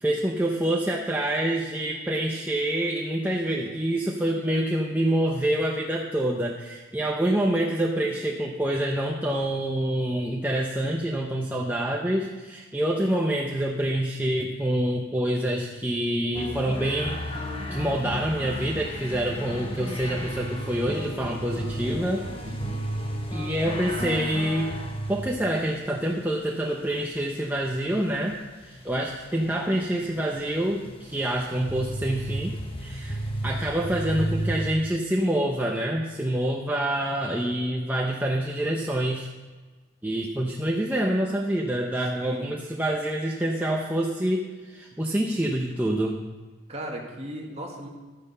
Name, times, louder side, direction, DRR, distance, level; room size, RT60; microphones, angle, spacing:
voice 1, 0.0-17.4 17.7-22.2 23.3-24.7 25.1-32.5 32.8-33.2 33.4-39.3 40.0-46.2, right 1 dB, 10° right, -1 dB, 0.7 m, -26 dB
sound 1, 16.3-25.4 27.4-34.6, equal, 25° left, 1.2 m, -34 dB
voice 2, 22.4-22.8 42.1-42.5 46.7-47.9, right 1 dB, 30° right, 0 dB, 1.9 m, -37 dB
12.0 x 9.5 x 5.4 m, 1.3 s
head